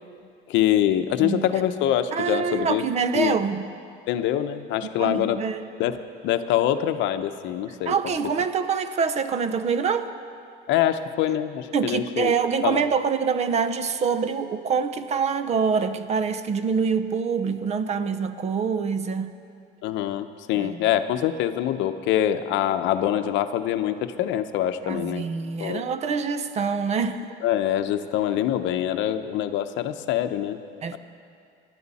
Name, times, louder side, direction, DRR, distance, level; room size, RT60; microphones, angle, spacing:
voice 1, 0.5-2.9 3.1-3.3 4.1-5.4 5.8-6.0 6.2-8.1 10.7-12.3 12.6-12.8 19.8-25.3 25.6-25.8 27.4-30.6, left 11 dB, 65° left, 9 dB, 0.8 m, -24 dB
voice 2, 1.2-1.5 2.1-3.6 5.0-5.6 7.9-10.1 11.7-19.4 20.5-20.9 24.8-27.3 30.8-31.0, right 6 dB, 35° right, 11 dB, 0.7 m, -25 dB
26.0 x 11.5 x 4.2 m, 2.4 s
cardioid pair, 155°, 20 cm